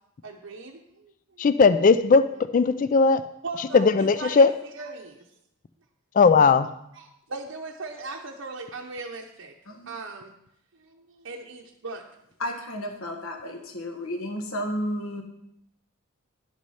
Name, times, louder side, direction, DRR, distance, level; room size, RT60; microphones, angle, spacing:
voice 1, 0.2-1.5 3.4-5.3 7.0-9.5 9.9-10.3 10.7-12.0, right 3 dB, 70° right, -1 dB, 0.8 m, -39 dB
voice 2, 1.4-2.3 2.5-3.2 3.6-4.5 6.1-6.7, left 4 dB, 40° left, 12 dB, 0.3 m, -18 dB
voice 3, 12.4-15.2, equal, 75° left, 4 dB, 1.4 m, -32 dB
11.0 x 6.2 x 5.6 m, 0.78 s
head